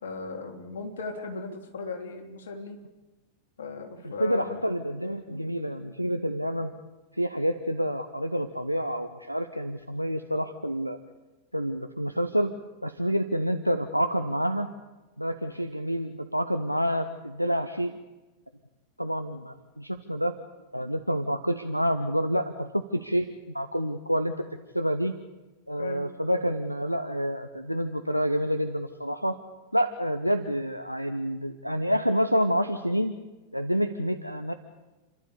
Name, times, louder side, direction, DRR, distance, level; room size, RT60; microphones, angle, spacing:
voice 1, 0.0-2.8 3.6-4.6 25.8-26.1, left 3 dB, 60° left, 3 dB, 3.3 m, -37 dB
voice 2, 4.0-6.7 7.1-11.0 11.5-12.5 12.8-14.7 15.2-18.0 19.0-20.3 20.7-23.3 23.5-24.5 24.7-25.1 25.7-29.4 29.7-33.1 33.5-34.5, equal, 90° left, 9 dB, 0.9 m, -28 dB
29.5 x 12.0 x 8.6 m, 1.1 s
figure-of-eight pair, 90°, 0 cm